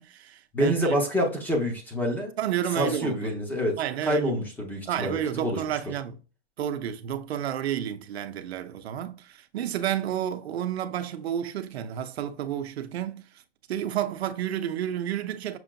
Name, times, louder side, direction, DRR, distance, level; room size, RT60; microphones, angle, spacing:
voice 1, 0.0-1.0 2.4-3.3 3.8-4.4 4.9-6.2 6.6-13.2 13.7-15.6, right 10 dB, 85° right, 0.7 m, -31 dB
voice 2, 0.5-2.3 2.7-5.6, equal, 5° left, 0.6 m, -27 dB
6.1 x 2.8 x 2.2 m
hypercardioid pair, 160°, 31 cm